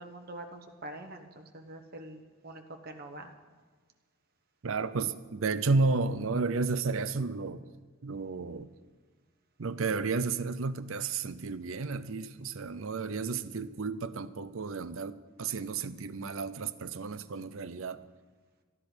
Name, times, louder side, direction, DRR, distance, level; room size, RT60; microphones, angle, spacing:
voice 1, 0.0-3.3, right 1 dB, 45° right, 4 dB, 1.3 m, -45 dB
voice 2, 4.6-7.7 8.0-8.7 9.6-18.0, right 4 dB, 70° right, 14 dB, 0.6 m, -32 dB
13.5 x 11.0 x 6.1 m, 1.4 s
head